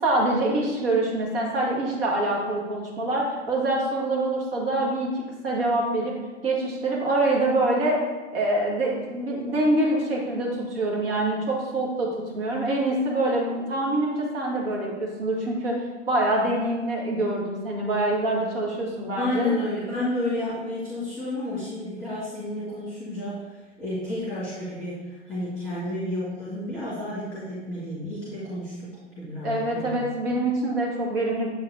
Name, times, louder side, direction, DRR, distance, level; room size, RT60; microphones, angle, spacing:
voice 1, 0.0-6.1 6.4-8.0 8.3-15.8 16.1-19.5 29.4-31.5, right 2 dB, 50° right, -2 dB, 1.9 m, -25 dB
voice 2, 19.2-28.9 29.2-30.1, left 1 dB, 10° left, -9 dB, 1.8 m, -31 dB
7.2 x 4.1 x 3.9 m, 1.2 s
figure-of-eight pair, 110°, 37 cm